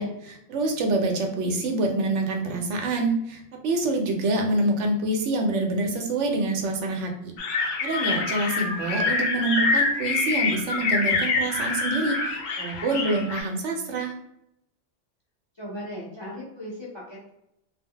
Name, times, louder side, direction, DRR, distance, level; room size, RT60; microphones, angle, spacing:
voice 1, 0.0-7.3 7.6-14.1, right 2 dB, 80° right, 3 dB, 0.9 m, -26 dB
sound 1, 7.4-13.4, left 3 dB, 70° left, 0.8 m, -26 dB
voice 2, 15.6-17.3, equal, 30° left, -6 dB, 0.5 m, -37 dB
2.2 x 2.1 x 3.6 m, 0.79 s
omnidirectional pair, 1.2 m